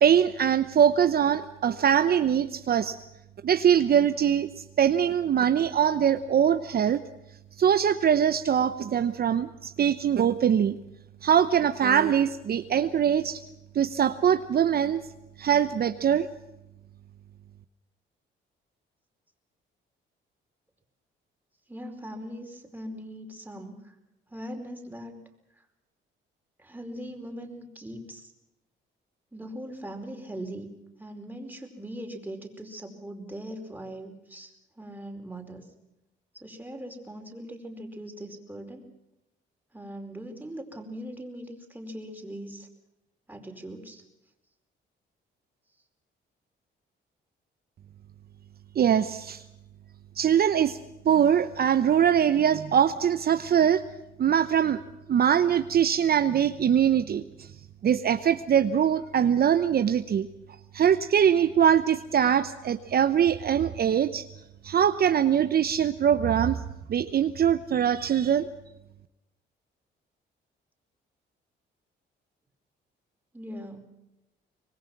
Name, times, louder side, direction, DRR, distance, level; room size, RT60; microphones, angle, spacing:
voice 1, 0.0-3.0 3.4-7.0 7.6-10.8 11.2-13.4 13.7-15.0 15.4-16.3 48.8-49.4 50.2-50.8 51.0-53.8 54.2-54.8 55.1-57.5 57.8-60.3 60.7-64.3 64.6-66.6 66.9-68.5, right 9 dB, 50° right, 10 dB, 0.9 m, -22 dB
voice 2, 21.7-23.9 24.3-25.2 26.6-28.3 29.3-35.7 36.3-38.8 39.7-42.7 43.3-44.0 73.3-73.9, right 1 dB, 10° right, 3 dB, 4.8 m, -40 dB
24.5 x 21.0 x 6.0 m, 0.91 s
cardioid pair, 90°, 20 cm